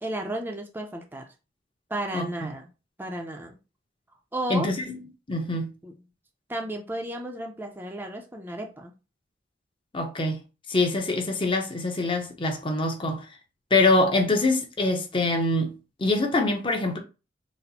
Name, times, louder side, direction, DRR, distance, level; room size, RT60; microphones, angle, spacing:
voice 1, 0.0-1.3 1.9-2.7 3.0-3.6 4.3-4.7 5.8-5.9 6.5-8.9, right 1 dB, 10° right, 0.5 m, -33 dB
voice 2, 2.1-2.5 4.5-5.0 5.3-5.7 9.9-10.4 10.7-13.3 13.7-15.7 16.0-17.0, left 2 dB, 25° left, 0.7 m, -24 dB
4.2 x 2.0 x 4.1 m
head